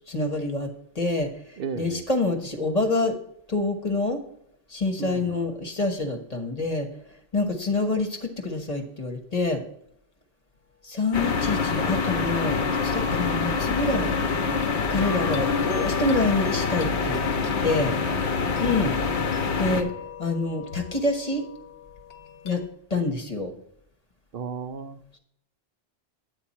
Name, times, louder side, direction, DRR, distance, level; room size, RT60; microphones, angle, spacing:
voice 1, 0.1-3.2 3.5-4.2 4.7-6.9 7.3-9.6 10.8-14.1 14.9-17.2 17.6-18.0 18.6-19.0 19.6-19.9 20.2-21.4 22.4-22.6 22.9-23.5, left 2 dB, 40° left, 4 dB, 1.3 m, -27 dB
voice 2, 1.6-2.0 5.0-5.4 17.9-18.3 24.3-25.0, right 6 dB, 65° right, 11 dB, 0.8 m, -35 dB
sound 1, 11.1-19.8, left 5 dB, 90° left, 1.3 m, -26 dB
sound 2, 13.9-22.7, left 7 dB, 65° left, 1.2 m, -39 dB
10.0 x 8.7 x 4.2 m, 0.74 s
omnidirectional pair, 1.1 m